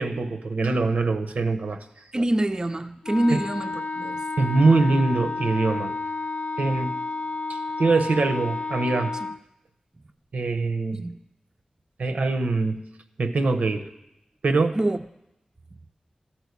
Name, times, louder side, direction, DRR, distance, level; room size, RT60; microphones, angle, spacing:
voice 1, 0.0-1.8 3.3-3.4 4.4-5.9 6.6-7.0 7.5-9.1 10.3-11.0 12.0-12.8 13.2-13.9 14.4-14.8, right 3 dB, 90° right, 7 dB, 0.7 m, -23 dB
voice 2, 2.1-4.2 10.9-11.2 14.7-15.0, right 1 dB, 30° right, 8 dB, 0.4 m, -25 dB
Wind instrument woodwind instrument, 3.0-9.4, left 3 dB, 70° left, 0.3 m, -31 dB
13.0 x 4.4 x 8.0 m, 0.88 s
wide cardioid pair, 70°, 2 cm